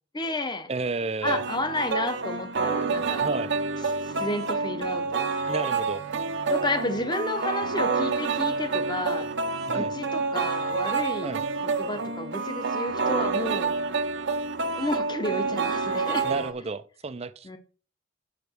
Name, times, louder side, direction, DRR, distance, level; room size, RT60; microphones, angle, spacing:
voice 1, 0.1-0.7 1.2-3.3 4.0-5.3 6.5-9.3 9.7-11.3 11.8-13.7 14.7-16.3 17.4-17.6, left 2 dB, 20° left, 1.0 m, -31 dB
voice 2, 0.7-1.4 3.2-3.5 5.5-6.0 9.7-9.9 11.2-11.4 16.2-17.6, right 3 dB, 30° right, 0.5 m, -32 dB
sound 1, 1.2-16.5, right 4 dB, 60° right, 0.8 m, -28 dB
7.1 x 5.1 x 6.3 m
head